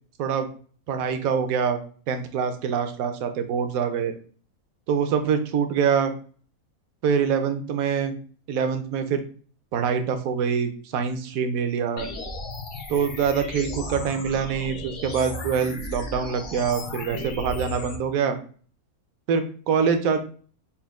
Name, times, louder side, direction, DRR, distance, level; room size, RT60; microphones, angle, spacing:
voice 1, 0.9-1.8 2.1-4.1 4.9-6.1 7.0-8.1 8.5-9.2 9.7-12.1 12.9-18.4 19.3-20.2, right 6 dB, 75° right, 7 dB, 1.1 m, -25 dB
sound 1, 12.0-18.0, left 2 dB, 55° left, 0.5 m, -35 dB
4.3 x 2.2 x 3.6 m, 0.43 s
omnidirectional pair, 1.5 m